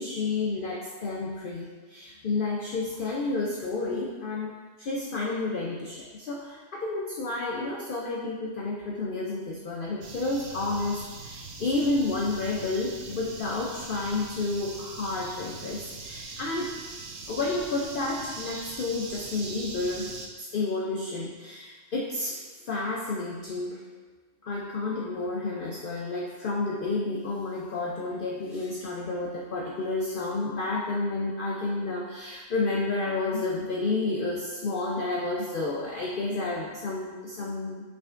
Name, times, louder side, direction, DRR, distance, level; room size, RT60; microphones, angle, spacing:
voice 1, 0.0-4.5 4.8-16.7 17.3-23.8 24.4-37.8, left 3 dB, 80° left, -3 dB, 0.4 m, -30 dB
sound 1, 10.0-20.3, right 4 dB, 65° right, 0.7 m, -41 dB
5.9 x 3.4 x 2.5 m, 1.4 s
omnidirectional pair, 1.5 m